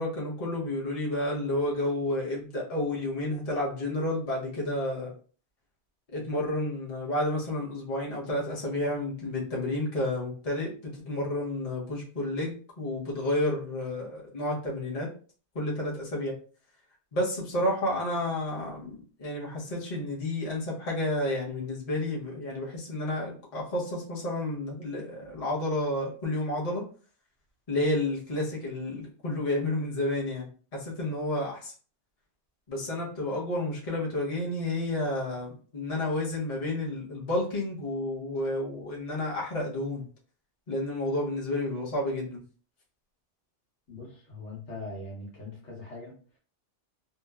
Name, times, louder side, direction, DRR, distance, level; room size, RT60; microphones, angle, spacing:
voice 1, 0.0-5.1 6.1-15.1 15.5-16.3 17.1-26.8 27.7-30.5 30.7-31.7 32.7-40.0 40.7-42.4, left 1 dB, 35° left, -4 dB, 0.8 m, -31 dB
voice 2, 43.9-46.4, left 2 dB, 75° left, -3 dB, 1.3 m, -41 dB
2.8 x 2.1 x 2.3 m, 0.40 s
omnidirectional pair, 1.2 m